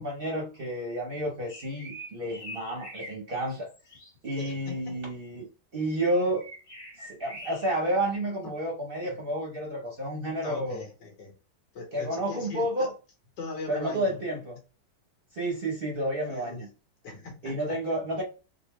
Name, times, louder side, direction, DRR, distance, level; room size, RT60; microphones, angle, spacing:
voice 1, 0.0-3.7 4.2-6.4 7.0-10.8 11.9-12.9 13.7-14.6 15.3-16.7 17.4-18.2, right 1 dB, 55° right, 0.6 m, -30 dB
sound 1, 1.5-3.2 3.5-4.1 6.3-7.8, equal, 50° left, 2.0 m, -44 dB
voice 2, 4.3-5.0 9.0-9.2 10.4-11.3 11.7-12.9 13.4-14.2 16.3-16.7 17.0-17.8, left 3 dB, 80° left, 1.9 m, -40 dB
3.9 x 2.1 x 3.1 m
omnidirectional pair, 1.9 m